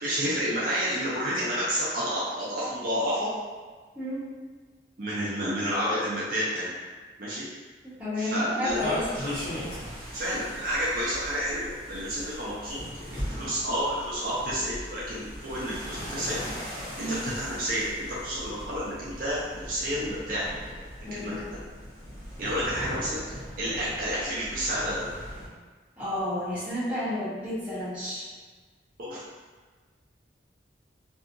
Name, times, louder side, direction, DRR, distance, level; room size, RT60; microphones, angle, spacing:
voice 1, 0.0-3.3 5.0-6.7 7.2-7.5 8.2-9.3 10.1-12.8 13.1-20.6 21.1-21.6 22.4-25.1 29.0-29.2, equal, 50° right, -8 dB, 0.5 m, -30 dB
voice 2, 3.9-4.3 7.8-9.1 17.0-17.3 21.0-21.5 26.0-28.3, left 1 dB, 5° right, -14 dB, 1.1 m, -31 dB
sound 1, 8.7-25.5, equal, 20° left, 0.8 m, -39 dB
2.7 x 2.4 x 2.5 m, 1.4 s
head